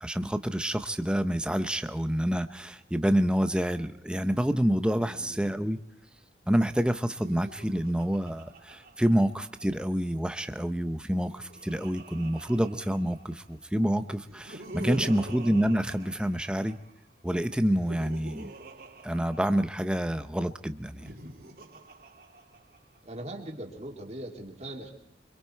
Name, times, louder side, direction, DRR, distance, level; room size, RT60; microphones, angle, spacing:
voice 1, 0.0-5.8 6.5-16.8 17.2-18.5 19.0-21.1, equal, 5° right, 10 dB, 0.7 m, -28 dB
voice 2, 5.0-5.5 15.0-15.3 23.0-24.9, right 1 dB, 35° right, 1 dB, 2.9 m, -41 dB
Laughter, 7.1-9.9 10.9-13.5 14.2-16.9 17.6-20.0 20.8-23.0, right 1 dB, 50° right, 2.8 m, -45 dB
25.5 x 23.5 x 4.5 m, 0.72 s
head